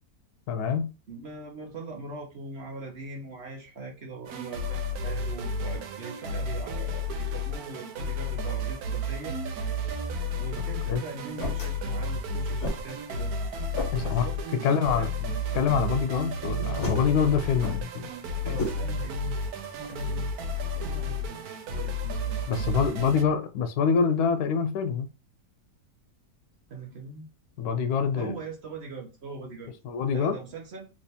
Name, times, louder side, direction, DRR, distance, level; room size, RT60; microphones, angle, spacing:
voice 1, 0.5-0.9 10.9-11.0 13.9-14.3 14.6-18.1 18.4-18.6 22.5-25.1 27.6-28.3 29.8-30.4, left 6 dB, 85° left, 1.1 m, -26 dB
voice 2, 1.1-9.4 10.3-13.3 14.0-15.1 18.4-19.4 19.8-20.3 20.7-23.1 26.7-27.3 28.2-29.7 30.1-30.9, right 3 dB, 50° right, 0.9 m, -41 dB
sound 1, 4.3-23.2, left 1 dB, 80° right, 1.1 m, -32 dB
sound 2, 10.3-21.0, left 1 dB, 50° left, 1.4 m, -39 dB
3.3 x 2.9 x 2.8 m
omnidirectional pair, 1.6 m